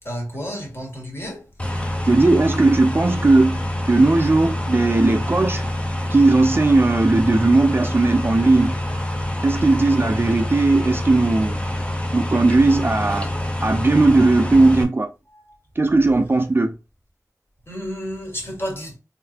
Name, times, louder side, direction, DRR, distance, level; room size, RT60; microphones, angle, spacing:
voice 1, 0.0-1.5 15.5-15.6 17.7-19.0, equal, 40° left, 1.7 m, -31 dB
sound 1, 1.6-14.8, left 1 dB, 20° left, 0.7 m, -26 dB
voice 2, 2.1-5.6 6.1-8.7 9.4-11.6 12.1-13.3 13.6-15.1 15.8-16.7, right 2 dB, 35° right, 0.5 m, -17 dB
3.9 x 3.1 x 2.8 m
wide cardioid pair, 70°, 6 cm